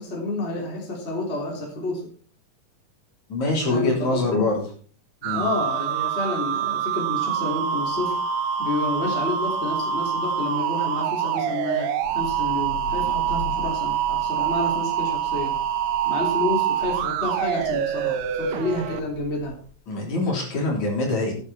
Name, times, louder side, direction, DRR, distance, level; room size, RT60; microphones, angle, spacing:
voice 1, 0.0-2.1 3.7-4.4 5.3-8.2 8.6-15.5 16.0-19.5, left 2 dB, 20° left, -1 dB, 3.2 m, -29 dB
voice 2, 3.3-4.6 5.2-5.5 19.9-21.3, left 2 dB, 50° left, -1 dB, 4.8 m, -24 dB
sound 1, 5.2-19.0, right 9 dB, 75° right, 2.7 m, -25 dB
Thunder / Rain, 12.0-19.7, left 7 dB, 80° left, 5.1 m, -41 dB
13.5 x 10.0 x 4.3 m, 0.43 s
omnidirectional pair, 4.2 m